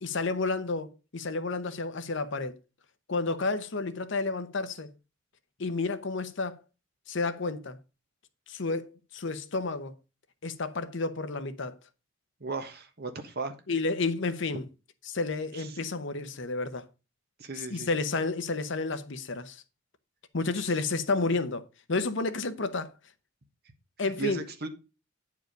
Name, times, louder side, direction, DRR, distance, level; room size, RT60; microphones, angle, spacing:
voice 1, 0.0-2.5 3.1-4.9 5.6-6.6 7.1-7.8 8.5-9.9 10.4-11.8 13.7-14.6 15.1-16.9 17.5-19.6 20.3-21.6 21.9-22.9 24.0-24.4, left 3 dB, 65° left, 0.9 m, -31 dB
voice 2, 12.4-13.5 15.5-15.7 17.4-17.9 24.0-24.7, right 3 dB, 50° right, 1.3 m, -36 dB
9.4 x 4.8 x 5.2 m
head